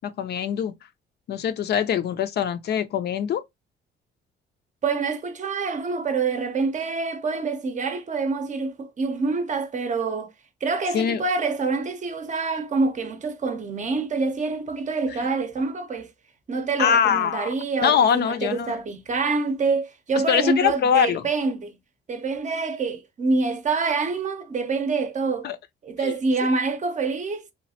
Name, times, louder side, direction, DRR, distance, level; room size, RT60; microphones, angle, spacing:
voice 1, 0.0-0.7 1.3-3.4 10.9-11.2 16.8-17.5 17.8-18.8 20.3-21.2 25.4-25.6 26.0-26.1, left 8 dB, 55° left, 0.4 m, -23 dB
voice 2, 4.8-10.3 10.6-16.1 16.5-21.8 22.1-25.5 25.8-27.5, right 4 dB, 40° right, 0.6 m, -26 dB
3.1 x 2.4 x 2.7 m
cardioid pair, 90°, 20 cm